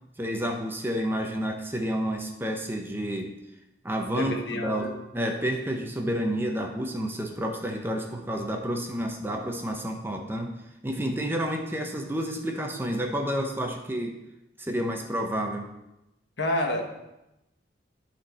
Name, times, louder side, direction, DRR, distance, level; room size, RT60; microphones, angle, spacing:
voice 1, 0.2-3.3 3.8-10.6 10.8-14.2 14.6-15.7, equal, 10° right, 3 dB, 0.8 m, -30 dB
voice 2, 4.1-5.0 16.4-16.8, left 1 dB, 70° left, 3 dB, 1.3 m, -29 dB
12.5 x 4.4 x 4.3 m, 0.92 s
head